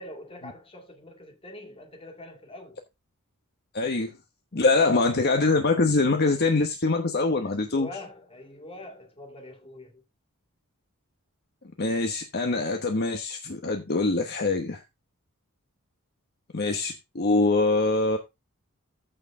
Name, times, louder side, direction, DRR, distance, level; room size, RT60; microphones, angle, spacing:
voice 1, 0.0-2.8 4.5-5.1 7.4-10.0, left 1 dB, 25° left, 2.3 m, -44 dB
voice 2, 3.7-4.1 4.5-7.9 11.8-14.8 16.5-18.2, left 3 dB, 45° left, 1.1 m, -24 dB
14.0 x 4.8 x 3.6 m
head